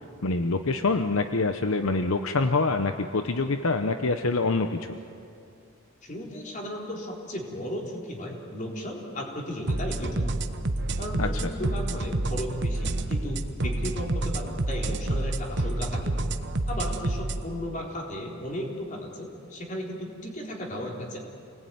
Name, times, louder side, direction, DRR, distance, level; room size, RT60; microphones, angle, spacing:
voice 1, 0.2-5.0 11.2-11.5, left 3 dB, 65° left, 8 dB, 0.9 m, -26 dB
voice 2, 6.0-10.2 11.0-16.1 16.7-21.2, equal, 35° left, 0 dB, 4.1 m, -35 dB
sound 1, 9.7-17.4, right 2 dB, 50° right, 1.1 m, -28 dB
28.0 x 19.5 x 9.4 m, 2.6 s
head